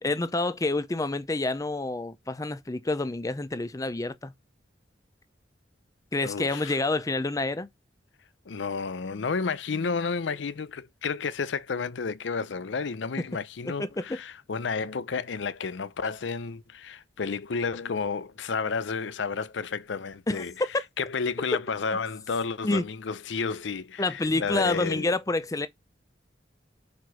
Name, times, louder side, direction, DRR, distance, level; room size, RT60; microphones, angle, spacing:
voice 1, 0.0-4.3 6.1-7.7 13.8-14.2 20.3-20.4 22.6-22.8 24.0-25.7, left 2 dB, 20° left, 0.5 m, -28 dB
voice 2, 6.2-6.8 8.5-20.5 21.0-25.1, left 5 dB, 75° left, 0.6 m, -31 dB
5.2 x 4.6 x 4.7 m
head